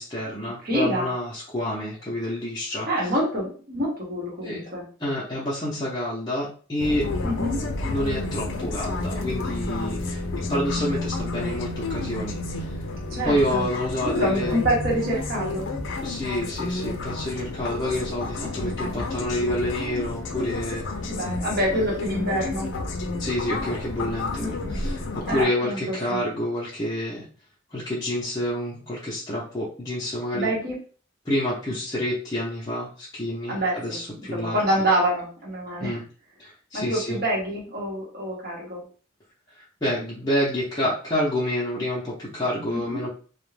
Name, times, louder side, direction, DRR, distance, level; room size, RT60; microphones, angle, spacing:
voice 1, 0.0-2.9 4.4-4.6 5.0-7.1 7.8-10.2 10.5-12.7 13.2-14.6 16.0-20.8 21.7-21.8 23.2-27.3 27.7-30.5 31.2-34.6 35.8-36.0 36.4-37.2 39.5-43.1, left 1 dB, 20° left, -9 dB, 0.6 m, -28 dB
voice 2, 0.6-1.1 2.9-4.8 7.2-7.6 13.1-13.7 14.0-15.7 18.4-18.5 18.8-19.1 21.1-22.7 24.4-24.8 25.3-26.2 30.3-30.8 33.5-36.0 36.7-38.8 42.7-43.0, right 1 dB, 50° right, -4 dB, 0.9 m, -27 dB
sound 1, 6.8-25.4, left 2 dB, 70° left, 0.4 m, -30 dB
2.3 x 2.1 x 3.1 m, 0.40 s
head